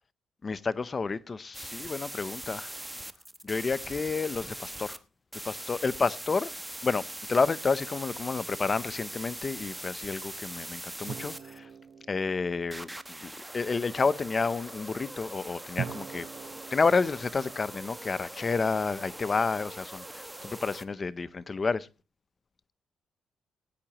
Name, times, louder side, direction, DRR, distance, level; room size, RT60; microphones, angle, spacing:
voice 1, 0.4-2.7 3.4-5.0 5.4-6.5 6.8-11.7 12.1-16.3 16.7-21.9, left 4 dB, 35° left, 0.7 m, -30 dB
sound 1, 1.5-5.0 5.3-11.6 12.7-20.9, right 1 dB, 5° right, 1.0 m, -42 dB
sound 2, 11.1-13.4 15.8-18.7, right 7 dB, 60° right, 0.9 m, -43 dB
18.5 x 9.8 x 3.0 m
cardioid pair, 90°, 0 cm